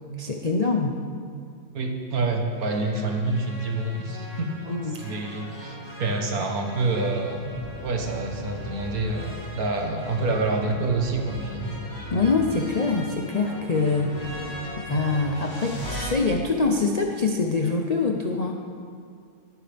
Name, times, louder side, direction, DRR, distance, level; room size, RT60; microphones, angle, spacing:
voice 1, 0.2-1.0 4.7-5.2 12.1-14.2 14.8-18.5, left 3 dB, 50° left, 1 dB, 0.5 m, -24 dB
voice 2, 1.7-4.5 5.0-7.4 7.8-11.7, right 3 dB, 70° right, 2 dB, 1.7 m, -27 dB
sound 1, 2.7-16.1, left 1 dB, 75° left, 3.1 m, -38 dB
19.0 x 9.3 x 3.5 m, 2.2 s
omnidirectional pair, 1.6 m